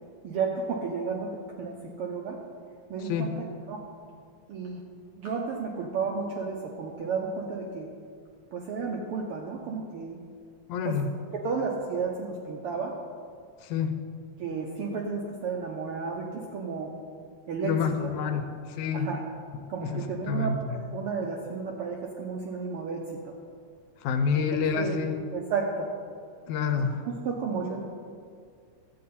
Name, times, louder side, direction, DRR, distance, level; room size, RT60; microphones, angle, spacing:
voice 1, 0.2-2.4 2.9-3.8 4.5-4.8 5.2-7.9 8.5-10.2 10.8-11.0 11.4-13.0 14.4-17.0 17.5-18.3 18.9-19.2 19.7-23.4 24.3-25.9 27.0-27.8, right 5 dB, 75° right, 0 dB, 1.3 m, -33 dB
voice 2, 10.7-11.1 13.6-14.0 17.6-18.5 18.8-19.1 19.8-20.6 24.0-25.2 26.5-27.0, left 6 dB, 85° left, 8 dB, 2.1 m, -27 dB
12.5 x 8.6 x 4.2 m, 2.2 s
omnidirectional pair, 3.3 m